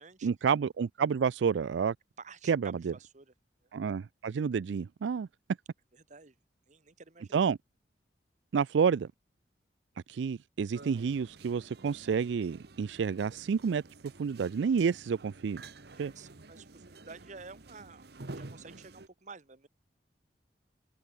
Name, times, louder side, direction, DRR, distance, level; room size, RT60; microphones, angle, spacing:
voice 1, 0.2-1.9 2.5-2.9 3.7-5.3 7.3-7.6 8.5-9.1 10.1-13.8 14.2-15.6 16.0-16.1, right 6 dB, 80° right, 0.4 m, -29 dB
voice 2, 2.2-3.3 5.9-6.3 6.7-7.3 15.9-18.1 18.3-19.7, right 4 dB, 40° right, 1.1 m, -50 dB
sound 1, 10.7-19.1, right 2 dB, 60° right, 1.2 m, -50 dB
head